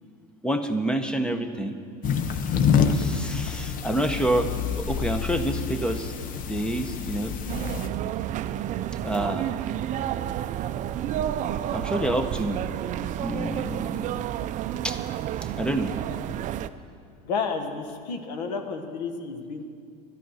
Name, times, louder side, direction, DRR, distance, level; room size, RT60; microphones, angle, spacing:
voice 1, 0.4-1.8 2.9-4.5 4.8-6.1 6.5-7.3 9.0-9.5 11.7-12.6 13.2-14.2 14.8-15.0 15.6-15.9, right 1 dB, 5° left, 8 dB, 0.8 m, -28 dB
sound 1, 2.0-7.9, left 6 dB, 40° left, 0.8 m, -27 dB
sound 2, 7.5-16.7, right 11 dB, 40° right, 0.4 m, -30 dB
voice 2, 17.2-19.6, left 5 dB, 90° left, 6 dB, 1.4 m, -31 dB
12.0 x 10.5 x 6.4 m, 2.3 s
supercardioid pair, 120°, 21 cm